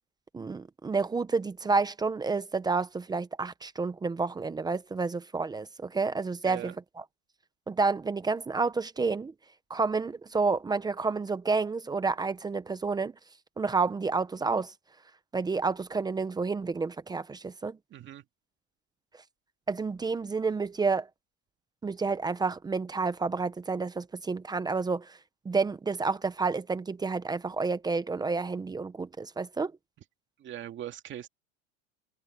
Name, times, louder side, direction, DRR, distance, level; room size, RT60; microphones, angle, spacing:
voice 1, 0.3-6.7 7.7-9.3 9.7-13.1 13.6-14.7 15.3-17.8 19.7-21.1 21.8-25.2 25.4-29.7, right 4 dB, 10° right, 0.8 m, -29 dB
voice 2, 6.4-6.8 17.9-18.2 30.4-31.3, right 12 dB, 30° right, 2.3 m, -40 dB
supercardioid pair, 140°, 38 cm